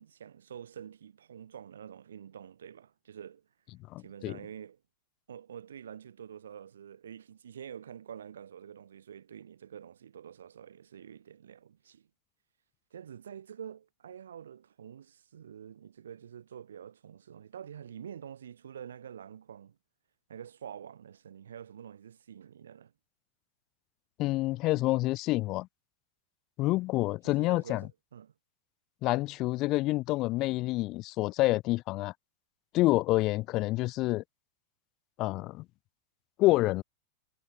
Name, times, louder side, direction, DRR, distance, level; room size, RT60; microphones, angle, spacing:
voice 1, 0.0-3.5 4.0-4.8 5.3-12.1 12.9-19.8 20.3-22.9 27.2-28.3, right 8 dB, 65° right, 6.4 m, -47 dB
voice 2, 3.9-4.4 24.2-25.7 26.6-27.8 29.0-32.1 32.7-34.2 35.2-35.6 36.4-36.8, left 19 dB, 40° left, 0.8 m, -28 dB
figure-of-eight pair, 90°, 0 cm